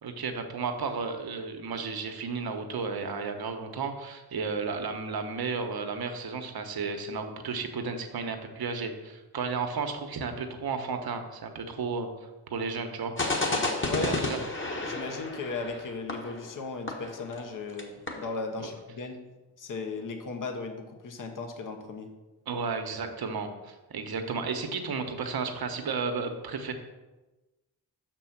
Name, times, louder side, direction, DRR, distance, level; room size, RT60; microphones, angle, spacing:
voice 1, 0.0-12.1 12.5-13.1 13.4-14.4 22.5-26.7, right 4 dB, 60° right, 6 dB, 1.1 m, -33 dB
sound 1, 13.2-17.5 17.8-17.9 18.1-18.3, left 2 dB, 30° left, 1.4 m, -31 dB
voice 2, 13.8-14.4 14.8-19.2 19.6-22.1, left 3 dB, 50° left, 4 dB, 1.2 m, -36 dB
6.1 x 4.5 x 5.9 m, 1.1 s
supercardioid pair, 50°, 42 cm